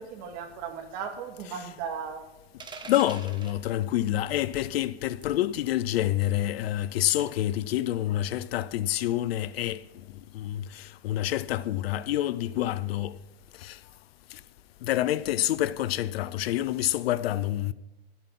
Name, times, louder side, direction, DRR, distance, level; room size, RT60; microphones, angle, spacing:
voice 1, 0.0-2.2, right 6 dB, 50° right, 2.5 m, -36 dB
sound 1, 2.6-3.6 5.2-5.4 7.2-7.5, right 4 dB, 15° right, 1.3 m, -44 dB
voice 2, 2.9-9.8 10.3-13.2 13.6-13.8 14.3-14.4 14.8-17.7, left 13 dB, 70° left, 0.6 m, -27 dB
12.0 x 8.3 x 5.9 m
hypercardioid pair, 130°, 32 cm